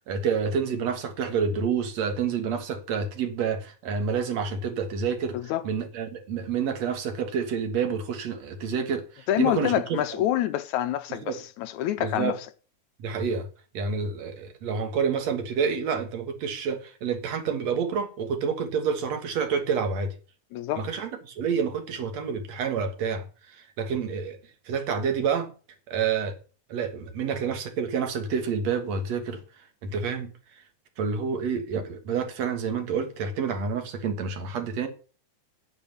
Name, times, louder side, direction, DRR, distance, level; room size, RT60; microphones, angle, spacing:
voice 1, 0.1-5.4 5.6-10.0 11.1-11.4 12.0-12.3 13.0-13.5 13.7-20.1 20.8-24.4 24.7-25.5 25.9-26.4 26.7-29.4 29.8-30.3 31.0-34.9, right 6 dB, 65° right, 2.6 m, -28 dB
voice 2, 9.3-12.4 20.5-20.9, left 13 dB, 80° left, 2.1 m, -27 dB
9.3 x 9.1 x 5.8 m
omnidirectional pair, 3.4 m